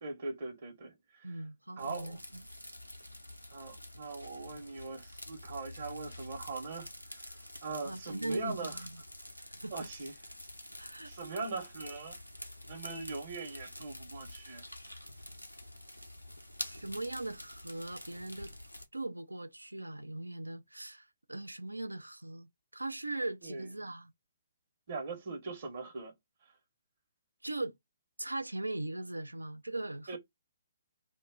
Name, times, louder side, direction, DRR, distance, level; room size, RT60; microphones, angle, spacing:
voice 1, 0.0-1.3 1.8-2.2 3.5-6.9 7.1-8.8 9.7-10.1 11.1-12.2 12.7-14.6 23.4-23.7 24.9-26.1 26.4-26.5 30.1-30.2, right 3 dB, 45° right, 0.8 m, -41 dB
voice 2, 1.2-2.4 7.8-9.0 9.4-9.9 10.8-11.1 16.7-18.5 18.9-24.1 27.4-27.7 28.2-30.2, right 2 dB, 80° right, 0.3 m, -40 dB
sound 1, 1.8-18.9, left 1 dB, 90° left, 0.6 m, -48 dB
2.2 x 2.0 x 3.5 m
figure-of-eight pair, 130°, 0 cm